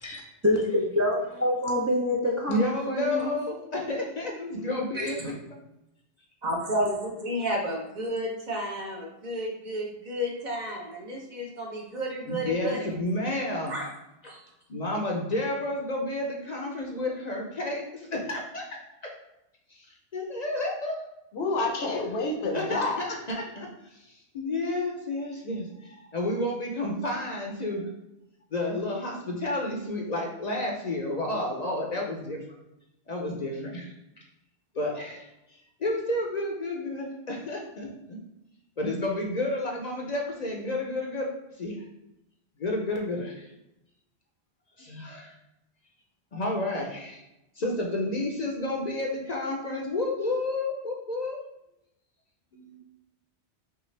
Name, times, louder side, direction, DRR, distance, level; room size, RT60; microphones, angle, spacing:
voice 1, 0.0-3.3, left 1 dB, 25° right, -3 dB, 0.3 m, -26 dB
voice 2, 2.5-5.4 12.2-13.7 14.2-14.3 14.7-18.6 19.7-19.9 20.1-20.9 22.5-27.9 28.5-32.4 33.1-33.9 34.7-35.3 35.8-38.2 38.8-41.3 41.6-41.9 42.6-43.5 44.8-45.3 46.3-47.2 47.6-51.4 52.5-52.8, left 1 dB, 45° left, 0 dB, 0.6 m, -31 dB
voice 3, 4.9-5.3 6.4-12.9 13.7-13.9 14.2-14.4, equal, 45° right, -1 dB, 0.8 m, -32 dB
voice 4, 21.3-23.0, left 2 dB, 70° left, 2 dB, 1.0 m, -28 dB
5.6 x 2.4 x 3.2 m, 0.89 s
omnidirectional pair, 1.1 m